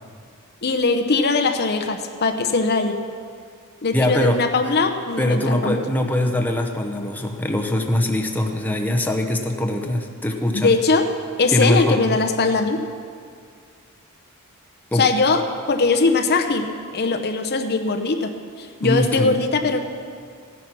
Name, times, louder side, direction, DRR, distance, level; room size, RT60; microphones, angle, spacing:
voice 1, 0.6-3.0 3.8-5.8 10.5-11.1 11.4-12.8 14.9-15.4 15.7-19.8, left 3 dB, 50° left, 6 dB, 0.8 m, -20 dB
voice 2, 3.9-4.4 5.2-10.7 11.5-12.2 14.9-15.0 18.8-19.4, left 1 dB, 10° left, 2 dB, 0.9 m, -22 dB
15.5 x 10.0 x 6.2 m, 2.1 s
head